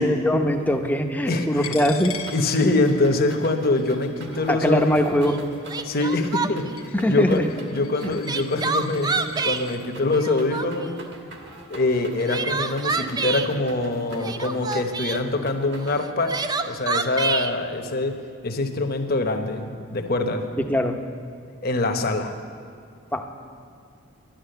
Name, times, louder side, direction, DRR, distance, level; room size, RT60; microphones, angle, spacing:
voice 1, 0.0-2.1 4.5-5.4 6.9-7.5 8.0-8.2 20.7-21.0 23.1-23.2, equal, 5° left, 4 dB, 0.7 m, -22 dB
voice 2, 1.3-1.7 2.3-5.0 5.8-7.4 7.7-11.0 11.7-16.3 16.6-18.1 18.4-20.4 21.6-22.3, left 2 dB, 45° left, 6 dB, 1.0 m, -24 dB
Coin (dropping), 1.6-9.8, left 7 dB, 80° left, 1.1 m, -42 dB
sound 1, 2.1-16.0, right 2 dB, 50° right, 1.5 m, -44 dB
Crying sobbing, 5.3-5.4 5.7-6.8 8.0-9.6 10.1-10.9 12.0-13.5 14.2-15.2 16.0-17.5, right 4 dB, 20° right, 0.3 m, -27 dB
11.5 x 11.0 x 7.9 m, 2.3 s
head